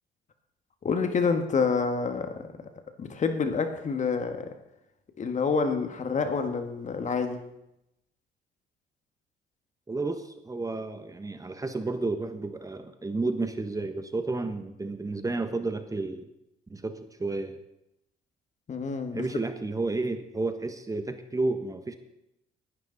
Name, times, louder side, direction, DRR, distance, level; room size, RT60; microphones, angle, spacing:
voice 1, 0.8-2.5 3.0-4.6 5.2-7.4 18.7-19.2, left 5 dB, 45° left, 7 dB, 1.8 m, -28 dB
voice 2, 9.9-16.2 16.7-17.6 19.1-22.0, right 3 dB, 20° right, 9 dB, 1.3 m, -31 dB
19.0 x 11.5 x 4.1 m, 0.86 s
supercardioid pair, 80°, 18 cm